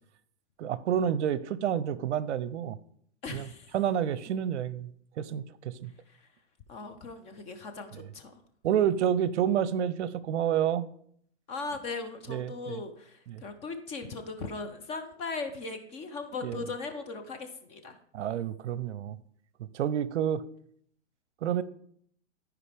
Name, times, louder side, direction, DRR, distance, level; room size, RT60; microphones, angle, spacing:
voice 1, 0.6-2.8 3.3-3.5 3.7-4.9 5.2-5.9 7.9-8.1 8.6-10.8 12.3-12.8 13.3-13.4 16.4-16.6 18.1-19.2 19.7-20.4 21.4-21.6, right 9 dB, 70° right, 17 dB, 0.6 m, -29 dB
voice 2, 3.2-3.7 6.1-6.2 6.7-8.3 11.5-18.0, left 4 dB, 20° left, 6 dB, 0.5 m, -38 dB
13.5 x 4.9 x 3.4 m, 0.64 s
hypercardioid pair, 140°, 36 cm